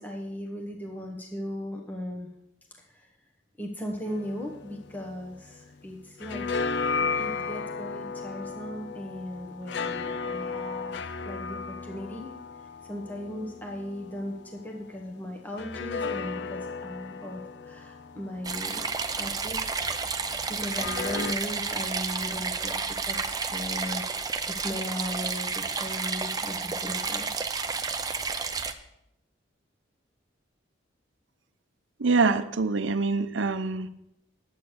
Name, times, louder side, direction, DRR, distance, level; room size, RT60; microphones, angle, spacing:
voice 1, 0.0-2.3 2.9-3.1 3.6-6.5 7.0-12.3 12.8-18.9 19.2-27.3, left 1 dB, 10° left, 0 dB, 1.1 m, -37 dB
sound 1, 4.1-5.7 6.0-14.7 15.6-19.6 20.6-21.3, left 4 dB, 60° left, 0.5 m, -35 dB
sound 2, 18.4-28.7, right 4 dB, 20° right, 0.6 m, -31 dB
voice 2, 32.0-33.9, right 4 dB, 75° right, 11 dB, 0.7 m, -25 dB
10.5 x 8.1 x 6.3 m, 0.82 s
head